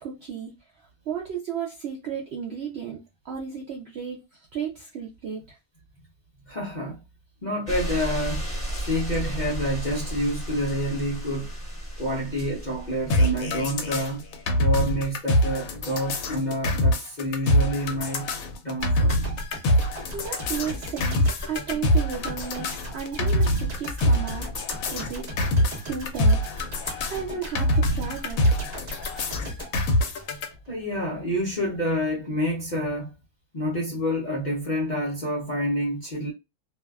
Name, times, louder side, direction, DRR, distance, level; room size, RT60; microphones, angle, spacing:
voice 1, 0.0-5.6 20.1-24.5 24.9-26.4 26.8-28.7, right 7 dB, 75° right, 0.6 m, -34 dB
voice 2, 6.4-7.0 7.4-8.5 8.8-11.5 12.0-14.2 14.6-18.3 18.6-19.2 30.7-33.1 33.5-36.3, equal, 50° left, 0.5 m, -28 dB
sound 1, 7.7-14.6 15.6-15.7, right 1 dB, 5° left, 0.9 m, -34 dB
sound 2, 13.1-30.5, equal, 70° left, 1.0 m, -24 dB
sound 3, 18.8-30.8 31.1-31.3, equal, 35° right, 0.7 m, -38 dB
2.6 x 2.3 x 2.2 m
omnidirectional pair, 1.6 m